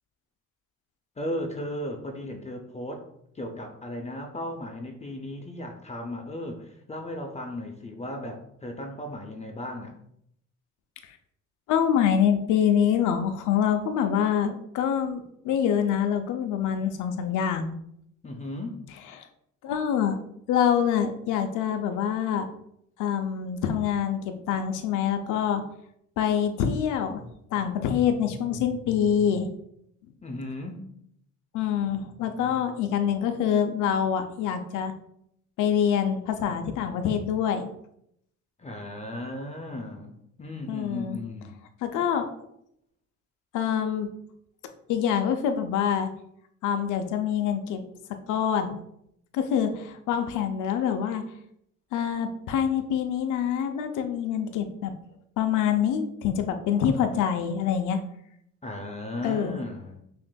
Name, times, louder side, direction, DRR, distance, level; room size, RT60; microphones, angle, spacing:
voice 1, 1.2-3.0 3.3-10.0 18.2-18.8 30.2-30.8 38.6-41.6 58.6-60.0, left 1 dB, 20° left, 3 dB, 0.5 m, -36 dB
voice 2, 11.7-17.7 19.2-19.3 19.6-20.2 20.5-22.5 23.0-25.6 26.2-29.5 31.5-34.9 35.6-37.7 40.7-41.2 41.8-42.3 43.5-44.1 44.9-46.1 46.6-47.8 48.3-48.8 49.3-51.2 51.9-54.9 55.4-58.0 59.2-59.6, left 8 dB, 85° left, 7 dB, 0.5 m, -25 dB
6.1 x 2.5 x 2.2 m, 0.74 s
cardioid pair, 90°, 30 cm